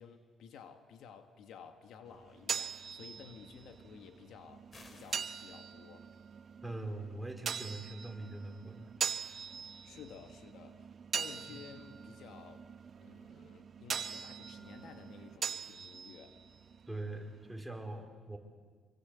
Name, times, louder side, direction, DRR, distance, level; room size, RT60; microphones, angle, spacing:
voice 1, 0.0-6.1 9.8-10.9 11.1-12.7 13.0-16.4, left 7 dB, 80° left, 7 dB, 1.9 m, -53 dB
sound 1, 2.1-17.6, right 7 dB, 50° right, 1.1 m, -42 dB
sound 2, 4.7-5.3, left 2 dB, 35° left, 4.4 m, -55 dB
voice 2, 6.6-8.9 11.5-11.6 16.9-18.4, right 2 dB, 5° right, 2 dB, 4.5 m, -42 dB
26.0 x 24.0 x 8.3 m, 1.5 s
cardioid pair, 90°, 0 cm